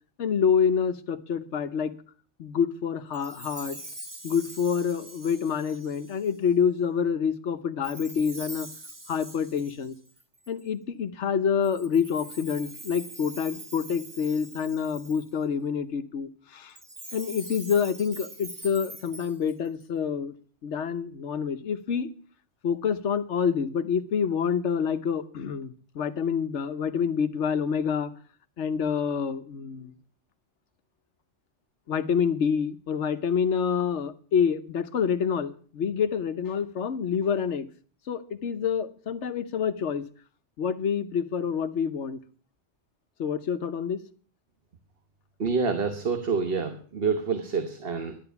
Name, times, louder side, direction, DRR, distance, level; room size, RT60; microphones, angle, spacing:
voice 1, 0.2-1.9 2.4-3.8 4.2-8.7 9.1-9.9 10.5-16.7 17.1-20.3 20.6-22.1 22.6-28.1 28.6-29.9 31.9-37.7 38.1-40.0 40.6-42.2 43.2-44.0, left 7 dB, 70° left, 11 dB, 1.2 m, -27 dB
Chime, 3.1-6.5 7.8-10.7 11.6-15.4 16.7-19.8, right 2 dB, 20° right, 0.9 m, -44 dB
voice 2, 45.4-48.2, right 5 dB, 50° right, 7 dB, 1.3 m, -27 dB
12.0 x 10.0 x 7.0 m, 0.43 s
omnidirectional pair, 1.2 m